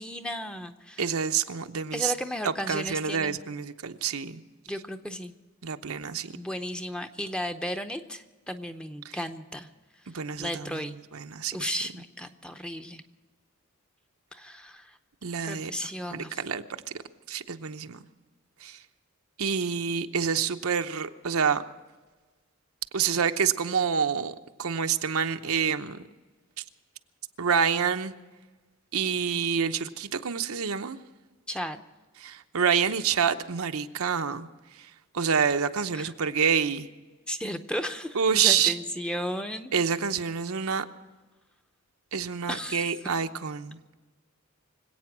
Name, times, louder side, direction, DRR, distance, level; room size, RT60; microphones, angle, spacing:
voice 1, 0.0-1.1 1.9-3.4 4.7-5.3 6.3-9.7 10.4-11.0 11.5-13.0 14.3-15.0 15.4-16.4 31.5-31.8 35.9-36.1 37.3-39.7 42.5-42.9, equal, 5° left, 0.7 m, -34 dB
voice 2, 1.0-2.1 2.7-4.4 5.6-6.3 10.1-10.8 11.1-11.5 15.2-15.7 16.1-16.6 17.3-18.0 18.6-18.8 19.4-21.6 22.9-26.0 27.4-28.1 28.9-31.0 32.2-34.5 35.1-36.9 38.1-38.7 39.7-40.8 42.1-43.8, right 7 dB, 80° right, 0.8 m, -27 dB
25.0 x 8.7 x 6.1 m
head